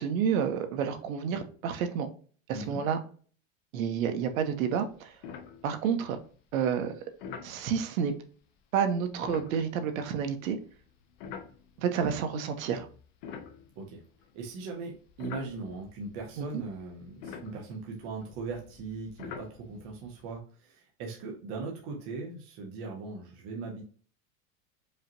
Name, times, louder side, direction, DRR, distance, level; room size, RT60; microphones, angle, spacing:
voice 1, 0.0-2.1 2.5-3.0 3.7-5.2 5.6-6.2 6.5-6.9 7.4-8.1 8.7-10.6 11.8-12.9 16.4-16.6, right 7 dB, 80° right, 8 dB, 0.9 m, -29 dB
voice 2, 2.5-2.8 13.8-14.0 14.3-14.9 15.2-23.8, right 3 dB, 25° right, 0 dB, 0.4 m, -39 dB
sound 1, 4.4-4.6 4.9-5.0 5.2-6.1 7.2-7.6 9.1-12.0 12.6-14.4 14.9-20.4, left 6 dB, 40° left, 0.5 m, -46 dB
5.0 x 2.8 x 2.6 m, 0.42 s
supercardioid pair, 175°, 41 cm